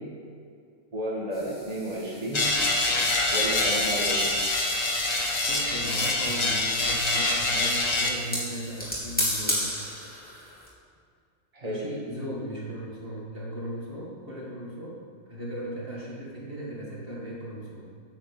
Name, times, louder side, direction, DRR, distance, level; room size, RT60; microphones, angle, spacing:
voice 1, 0.9-2.5 3.3-4.3 11.5-11.9, right 1 dB, 30° right, -4 dB, 2.1 m, -32 dB
sound 1, 1.3-10.7, equal, 5° left, 2.8 m, -36 dB
sound 2, 2.3-8.1, left 2 dB, 75° left, 1.9 m, -25 dB
voice 2, 5.5-9.8 11.6-15.0 15.3-18.0, right 1 dB, 45° right, -5 dB, 2.2 m, -37 dB
9.2 x 8.1 x 7.7 m, 2.2 s
omnidirectional pair, 1.4 m